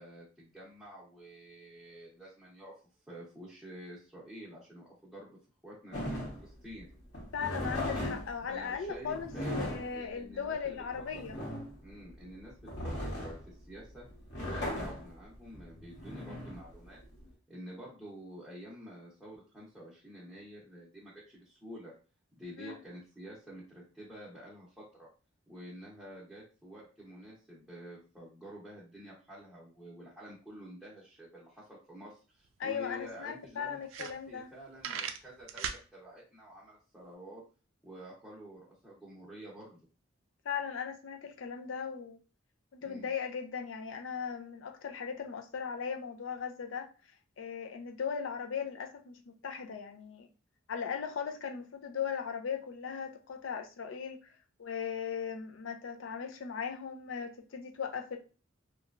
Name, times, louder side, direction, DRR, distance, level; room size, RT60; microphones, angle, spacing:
voice 1, 0.0-2.7 3.1-5.4 5.6-6.9 8.5-9.6 9.9-11.5 11.8-14.1 14.4-17.0 17.5-21.9 22.4-25.1 25.5-37.4 37.8-39.8 42.8-43.1, equal, ahead, -8 dB, 0.7 m, -49 dB
sound 1, 5.9-17.3, left 1 dB, 55° left, 1.0 m, -38 dB
voice 2, 7.3-9.3 9.6-11.4 22.6-22.8 32.6-34.5 40.4-42.2 42.7-46.9 47.4-50.3 50.7-54.3 54.6-58.2, left 7 dB, 75° left, 5 dB, 0.4 m, -38 dB
sound 2, 32.4-32.5 32.8-32.9 33.4-33.5 33.8-34.5 34.8-35.8, right 8 dB, 80° right, 0.3 m, -37 dB
2.9 x 2.3 x 2.4 m, 0.35 s
head